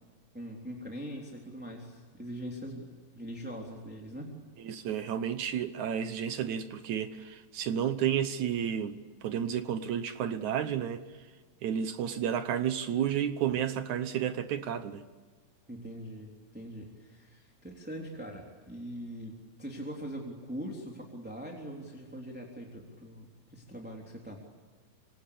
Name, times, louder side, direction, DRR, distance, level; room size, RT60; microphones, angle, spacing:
voice 1, 0.3-2.9 3.1-4.4 15.7-24.4, equal, 5° right, 3.0 m, -42 dB
voice 2, 4.6-11.0 11.6-15.0, right 9 dB, 65° right, 2.2 m, -31 dB
26.5 x 25.0 x 8.6 m
omnidirectional pair, 4.1 m